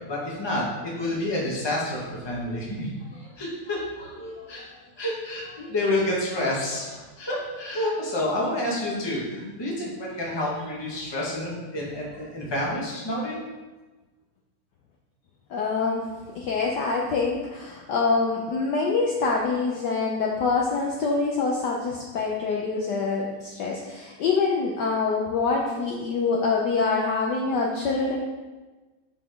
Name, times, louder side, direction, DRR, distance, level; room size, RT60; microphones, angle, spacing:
voice 1, 0.0-13.3, left 1 dB, 15° left, -4 dB, 1.0 m, -29 dB
voice 2, 15.5-16.1 16.3-28.2, left 4 dB, 70° left, -2 dB, 1.1 m, -25 dB
5.8 x 5.0 x 3.5 m, 1.2 s
omnidirectional pair, 2.3 m